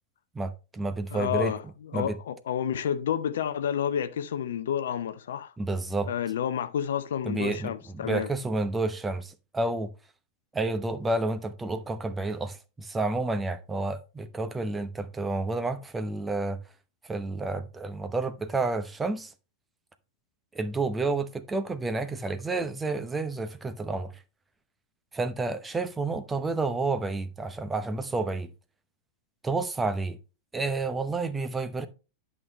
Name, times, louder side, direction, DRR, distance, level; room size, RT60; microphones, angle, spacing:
voice 1, 0.3-1.5 1.9-2.2 5.6-6.1 7.3-9.9 10.5-16.6 17.1-19.3 20.5-24.1 25.1-28.5 29.4-30.2 30.5-31.9, right 3 dB, 15° right, 0.9 m, -30 dB
voice 2, 1.1-5.5 6.1-8.3, left 9 dB, 60° left, 0.6 m, -30 dB
10.5 x 6.0 x 3.2 m
figure-of-eight pair, 90°, 0 cm